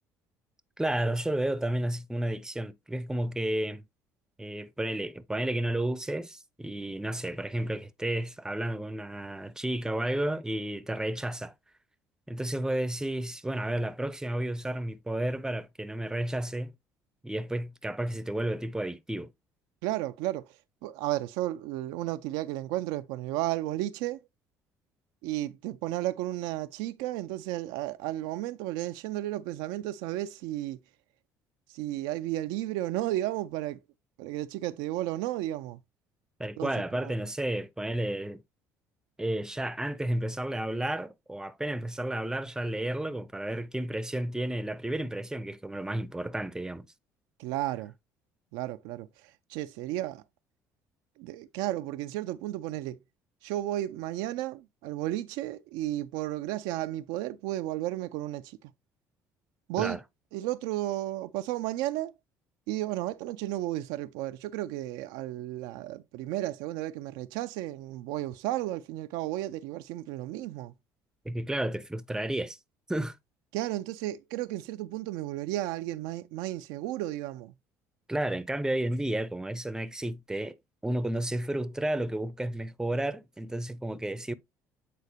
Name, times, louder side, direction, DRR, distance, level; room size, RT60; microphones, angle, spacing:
voice 1, 0.8-3.8 4.4-11.5 12.3-16.7 17.2-19.3 36.4-38.4 39.2-46.9 59.8-60.0 71.2-72.6 72.9-73.2 78.1-80.6 80.8-84.3, right 1 dB, 5° right, 0.6 m, -32 dB
voice 2, 19.8-20.5 20.8-24.2 25.2-30.8 31.7-33.8 34.2-35.8 36.6-37.1 47.4-47.9 48.5-49.1 49.5-50.2 51.2-53.0 53.4-58.6 59.7-60.0 60.3-62.1 62.7-70.7 73.5-77.5, right 15 dB, 70° right, 0.4 m, -33 dB
8.4 x 4.0 x 2.8 m
hypercardioid pair, 60°, 8 cm